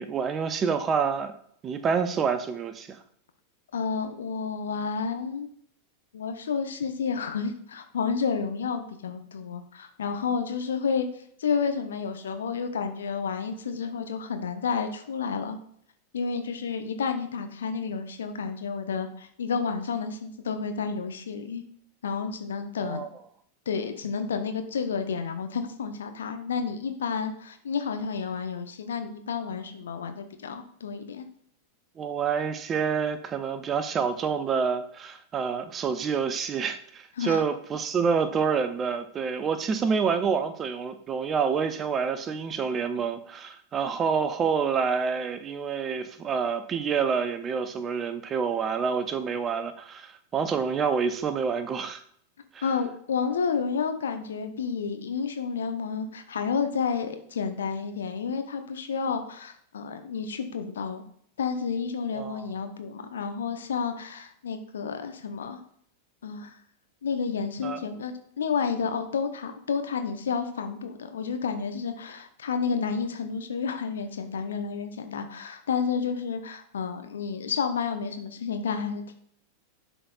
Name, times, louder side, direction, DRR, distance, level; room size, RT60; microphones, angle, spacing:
voice 1, 0.0-1.3 1.6-3.0 22.8-23.1 32.0-52.0 52.5-52.6 62.1-62.5 67.6-67.9, right 6 dB, 25° right, 0.6 m, -28 dB
voice 2, 3.7-5.5 6.1-11.1 11.4-15.6 16.1-21.6 22.0-23.0 23.7-31.3 37.2-37.4 52.6-61.0 61.4-65.6 66.2-66.5 67.0-79.1, left 6 dB, 65° left, 0.7 m, -30 dB
11.0 x 4.0 x 2.4 m
figure-of-eight pair, 90°, 0 cm